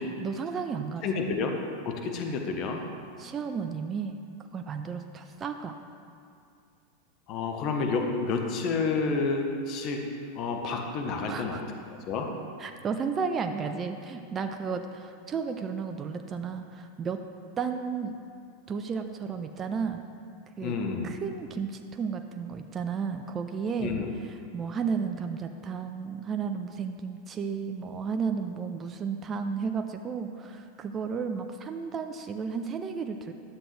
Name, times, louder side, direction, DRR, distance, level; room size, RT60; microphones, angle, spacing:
voice 1, 0.0-1.0 3.2-4.2 4.5-5.8 11.3-11.6 12.6-17.2 17.6-18.2 18.7-20.0 20.6-20.8 21.0-24.0 24.2-33.3, right 6 dB, 30° right, 6 dB, 0.5 m, -33 dB
voice 2, 1.0-1.5 1.8-2.8 7.3-10.1 10.3-11.6 12.1-12.3 20.6-21.1 23.8-24.1, left 4 dB, 45° left, 3 dB, 1.1 m, -29 dB
11.5 x 7.6 x 3.3 m, 2.5 s
hypercardioid pair, 95°, 0 cm